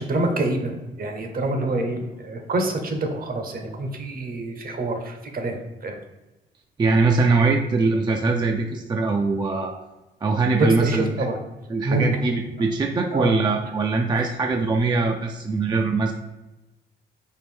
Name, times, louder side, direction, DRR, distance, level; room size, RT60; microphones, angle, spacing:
voice 1, 0.0-6.0 10.6-11.4 11.8-12.2 13.1-13.3, right 2 dB, 50° right, 5 dB, 0.8 m, -26 dB
voice 2, 6.8-9.7 10.2-11.1 11.7-16.1, right 3 dB, 20° right, 3 dB, 0.3 m, -22 dB
4.4 x 2.5 x 3.5 m, 1.0 s
cardioid pair, 80°, 20 cm